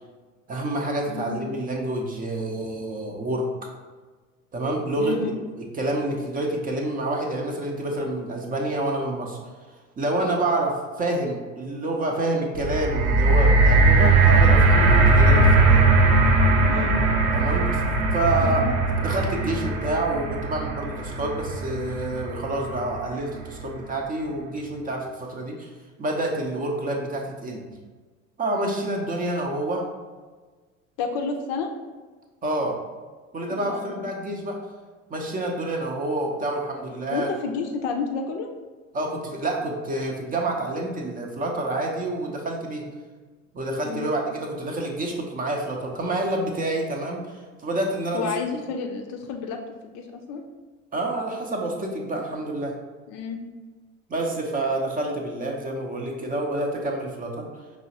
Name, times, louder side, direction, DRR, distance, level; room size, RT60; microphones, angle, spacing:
voice 1, 0.5-3.5 4.5-5.2 5.6-9.4 10.0-15.9 17.3-17.8 18.1-18.7 19.0-25.7 26.0-27.8 28.4-29.9 32.4-32.8 33.3-34.6 35.1-37.3 38.9-42.9 43.5-48.3 50.9-52.8 54.1-57.5, right 1 dB, 20° right, 1 dB, 0.6 m, -28 dB
voice 2, 5.0-5.4 16.7-17.0 18.4-18.7 31.0-31.7 33.5-34.1 37.1-38.5 43.8-44.1 48.1-49.6 49.8-50.4 53.1-53.4, left 5 dB, 40° left, 3 dB, 0.5 m, -30 dB
sound 1, 12.6-22.8 23.5-23.6, right 3 dB, 55° right, 0.7 m, -19 dB
5.4 x 3.1 x 2.8 m, 1.4 s
figure-of-eight pair, 65°, 39 cm